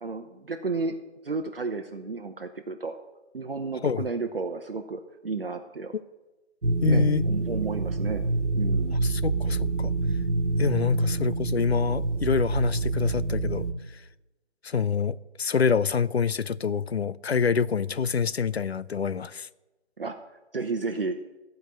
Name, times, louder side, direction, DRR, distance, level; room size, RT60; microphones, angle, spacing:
voice 1, 0.0-0.9 1.2-3.0 3.3-5.9 6.9-8.2 8.5-9.0 20.0-20.2 20.5-21.2, right 4 dB, 55° right, 0.9 m, -32 dB
sound 1, 6.6-13.7, right 2 dB, 85° right, 1.4 m, -26 dB
voice 2, 6.8-7.2 9.0-9.9 10.6-13.7 14.6-19.5, left 6 dB, 65° left, 0.5 m, -26 dB
14.5 x 5.4 x 7.5 m
figure-of-eight pair, 160°, 35 cm